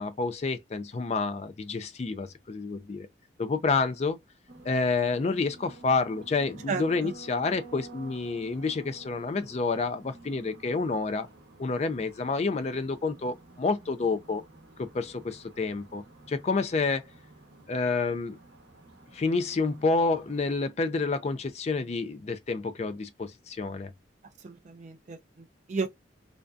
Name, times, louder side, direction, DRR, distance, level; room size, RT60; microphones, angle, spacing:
voice 1, 0.0-3.1 3.4-4.2 4.6-11.3 11.6-14.4 14.8-17.0 17.7-18.4 19.1-23.9, left 4 dB, 35° left, 0.3 m, -29 dB
sound 1, 4.5-20.6, right 3 dB, 60° right, 0.8 m, -51 dB
voice 2, 6.7-7.1 24.4-25.9, right 4 dB, 40° right, 0.3 m, -34 dB
2.5 x 2.2 x 2.3 m
head